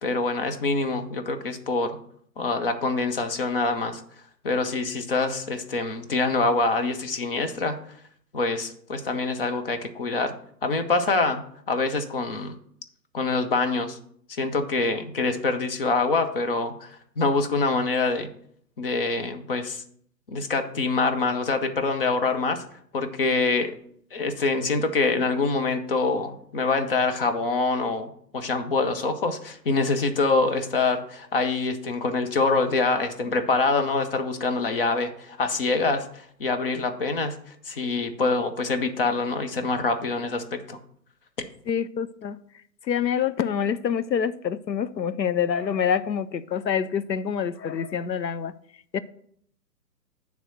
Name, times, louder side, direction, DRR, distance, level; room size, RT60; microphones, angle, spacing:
voice 1, 0.0-2.0 2.4-4.0 4.4-7.8 8.3-10.3 10.6-11.4 11.7-12.6 13.1-14.0 14.3-18.3 18.8-19.8 20.3-22.6 22.9-23.7 24.1-37.4 37.7-40.8, left 3 dB, 35° left, 0.7 m, -25 dB
voice 2, 41.7-42.4 42.9-48.5 48.9-49.0, left 7 dB, 85° left, 0.6 m, -26 dB
8.8 x 3.5 x 6.4 m
figure-of-eight pair, 130°, 50 cm